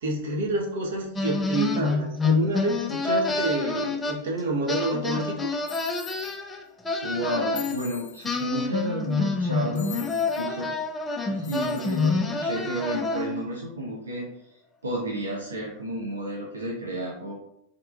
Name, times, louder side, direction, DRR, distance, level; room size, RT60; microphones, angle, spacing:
voice 1, 0.0-5.5, right 2 dB, 55° right, -1 dB, 0.9 m, -28 dB
sound 1, 1.2-4.4 4.7-7.8 8.2-13.5, left 3 dB, 15° left, 0.4 m, -27 dB
sound 2, 5.7-6.4 7.5-8.4 9.7-10.5 11.4-12.1, left 10 dB, 65° left, 0.7 m, -42 dB
voice 2, 7.0-10.7 11.3-17.3, right 1 dB, 75° right, -3 dB, 0.6 m, -32 dB
3.5 x 3.3 x 2.4 m, 0.77 s
figure-of-eight pair, 90°, 0 cm